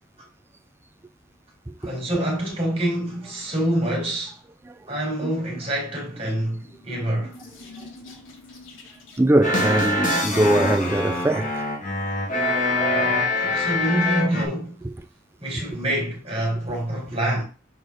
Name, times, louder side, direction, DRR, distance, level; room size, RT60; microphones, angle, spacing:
voice 1, 1.8-4.4 4.9-7.4 12.9-14.7 15.4-17.4, right 1 dB, 30° right, 3.3 m, -26 dB
sound 1, 6.6-9.5, left 3 dB, 90° left, 2.0 m, -46 dB
voice 2, 9.2-11.7 14.8-14.9, right 1 dB, 15° right, 0.4 m, -21 dB
sound 2, 9.4-14.4, left 2 dB, 45° left, 2.0 m, -24 dB
6.7 x 4.7 x 3.8 m
head